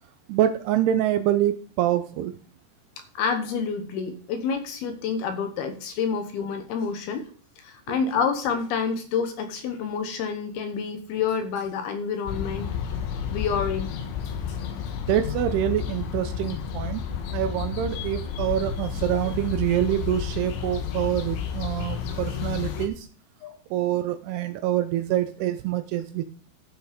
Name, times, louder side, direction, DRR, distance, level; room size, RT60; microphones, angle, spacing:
voice 1, 0.3-2.4 7.9-8.0 15.1-17.0 17.3-23.1 23.7-26.2, right 12 dB, 80° right, 9 dB, 2.5 m, -26 dB
voice 2, 3.1-7.3 7.6-12.7 13.3-13.9 23.4-23.6, left 6 dB, 70° left, 7 dB, 2.7 m, -28 dB
sound 1, 12.3-22.9, left 7 dB, 85° left, 3.7 m, -31 dB
13.0 x 6.3 x 5.1 m, 0.42 s
omnidirectional pair, 5.2 m